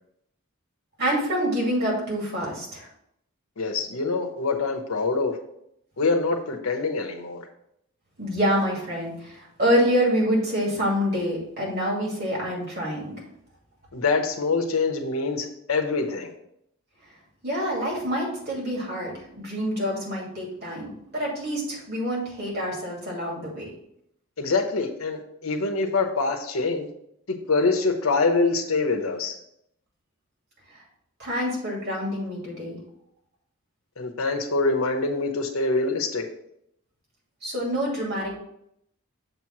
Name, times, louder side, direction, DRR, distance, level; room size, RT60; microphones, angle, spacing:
voice 1, 1.0-2.9 8.2-13.2 17.4-23.7 31.2-32.8 37.4-38.4, equal, 45° right, -3 dB, 2.4 m, -26 dB
voice 2, 3.6-5.4 6.0-7.4 13.9-16.3 24.4-26.9 27.5-29.4 34.0-36.2, left 3 dB, 75° left, 3 dB, 0.9 m, -25 dB
6.8 x 3.0 x 5.8 m, 0.74 s
head